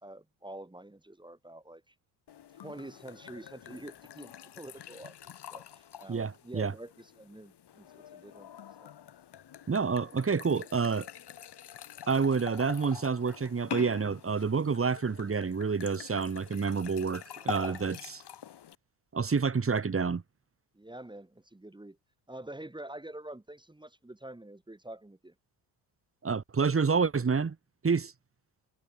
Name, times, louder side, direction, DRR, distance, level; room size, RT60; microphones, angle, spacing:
voice 1, 0.0-1.9 2.5-8.5 8.8-8.9 17.4-17.9 20.7-22.0 22.3-25.3, right 1 dB, 10° right, 2.4 m, -47 dB
sound 1, 2.3-18.8, left 10 dB, 55° left, 5.2 m, -46 dB
voice 2, 6.1-6.7 9.7-11.1 12.1-18.0 19.1-20.2 26.2-27.6 27.8-28.1, right 5 dB, 30° right, 2.3 m, -28 dB
supercardioid pair, 65°, 47 cm